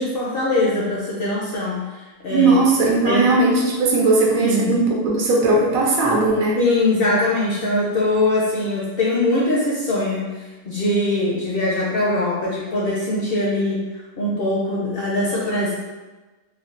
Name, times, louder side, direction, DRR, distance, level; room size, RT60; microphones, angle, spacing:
voice 1, 0.0-2.5 3.1-3.4 4.4-4.8 6.6-13.9 14.2-15.7, left 2 dB, 65° left, -5 dB, 0.6 m, -22 dB
voice 2, 2.3-6.6, right 3 dB, 85° right, -2 dB, 1.1 m, -18 dB
3.3 x 2.2 x 2.4 m, 1.2 s
omnidirectional pair, 1.4 m